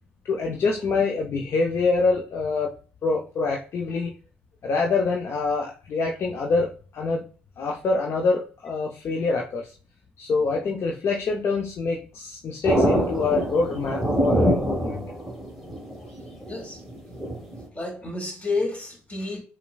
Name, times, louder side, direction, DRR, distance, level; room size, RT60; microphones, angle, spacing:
voice 1, 0.2-2.7 3.0-4.1 4.6-7.2 7.6-9.7 10.2-15.0, left 4 dB, 50° left, 0.7 m, -25 dB
sound 1, 12.6-17.7, equal, ahead, 1.7 m, -25 dB
voice 2, 16.5-16.8 17.7-19.4, left 3 dB, 25° left, 2.1 m, -30 dB
6.7 x 2.3 x 2.3 m
figure-of-eight pair, 50°, 6 cm